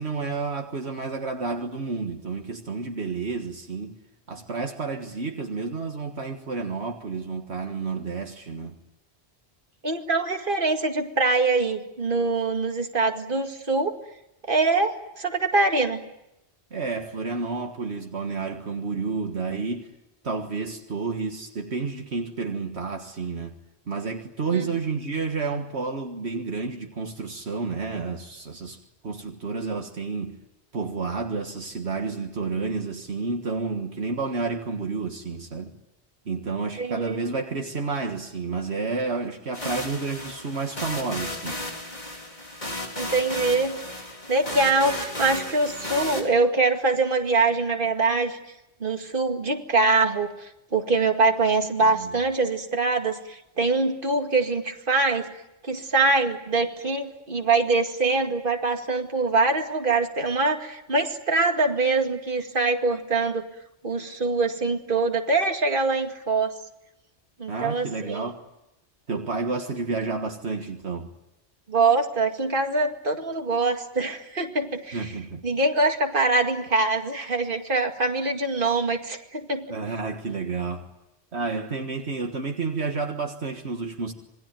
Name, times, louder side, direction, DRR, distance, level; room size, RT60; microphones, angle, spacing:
voice 1, 0.0-4.0 4.3-8.8 16.7-19.9 20.2-23.6 23.9-30.4 30.7-35.8 36.3-41.6 51.8-52.1 67.5-68.4 69.1-71.1 74.9-75.4 79.7-80.9 81.3-84.1, right 4 dB, 75° right, 1.9 m, -30 dB
voice 2, 9.8-13.9 14.5-16.0 24.5-24.7 36.8-37.2 43.0-43.8 44.3-48.4 48.8-55.3 55.6-63.4 63.8-66.5 67.4-68.3 71.7-75.1 75.4-79.7, right 3 dB, 50° right, 2.4 m, -24 dB
sound 1, 39.5-46.2, left 1 dB, 40° left, 4.1 m, -34 dB
27.0 x 21.5 x 9.2 m
omnidirectional pair, 1.1 m